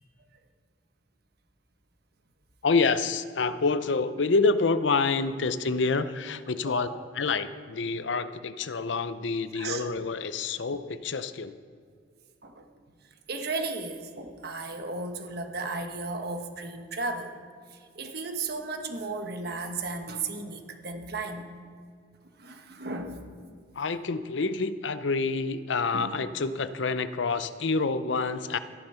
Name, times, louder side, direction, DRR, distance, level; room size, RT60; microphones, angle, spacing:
voice 1, 2.6-6.9 7.2-11.5 23.7-28.6, left 4 dB, 75° left, 12 dB, 0.6 m, -27 dB
voice 2, 6.7-7.0 9.5-9.9 12.4-12.6 13.3-17.3 17.7-21.5 22.4-23.2 25.9-26.2, right 3 dB, 60° right, 5 dB, 1.3 m, -35 dB
13.5 x 10.5 x 5.7 m, 2.1 s
head